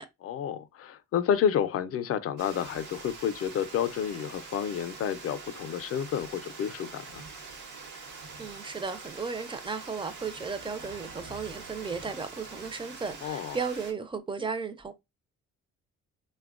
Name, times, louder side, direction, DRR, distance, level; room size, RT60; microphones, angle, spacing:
voice 1, 0.2-7.2 13.2-13.6, left 8 dB, 50° left, 0.4 m, -30 dB
Water, 2.4-13.9, right 4 dB, 75° right, 0.9 m, -44 dB
voice 2, 8.4-14.9, right 5 dB, 15° right, 0.4 m, -35 dB
3.3 x 2.2 x 2.4 m
cardioid pair, 90°, 30 cm